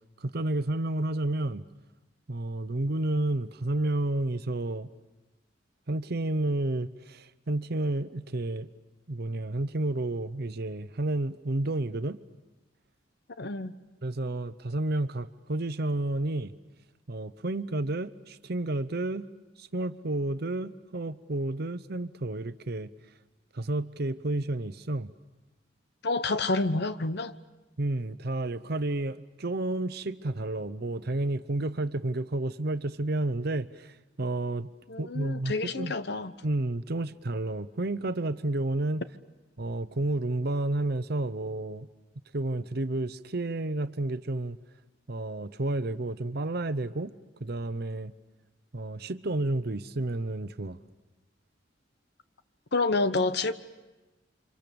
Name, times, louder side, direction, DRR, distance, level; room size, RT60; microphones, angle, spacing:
voice 1, 0.2-1.6 2.3-4.9 5.9-8.7 9.1-12.2 14.0-16.5 17.1-19.3 19.6-22.9 23.5-25.1 27.8-34.7 35.0-36.0 36.4-39.0 39.6-41.9 42.3-44.6 45.1-47.1 47.4-48.1 48.7-50.8, right 2 dB, 55° right, 0.9 m, -31 dB
voice 2, 13.4-13.7 26.0-27.3 34.9-36.3 52.7-53.5, left 3 dB, 60° left, 1.0 m, -28 dB
30.0 x 26.0 x 7.0 m
head